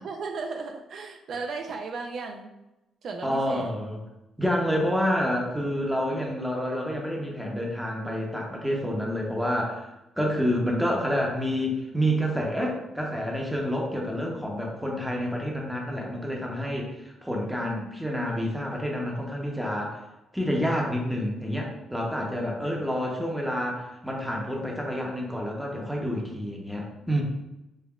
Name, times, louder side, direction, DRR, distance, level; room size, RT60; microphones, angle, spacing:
voice 1, 0.0-2.5 3.0-3.7 17.6-18.6, right 4 dB, 60° right, 3 dB, 0.3 m, -36 dB
voice 2, 3.2-4.0 4.4-9.9 10.2-20.0 20.3-27.2, equal, 5° right, -1 dB, 0.8 m, -28 dB
5.4 x 2.1 x 2.3 m, 0.95 s
cardioid pair, 90°, 0 cm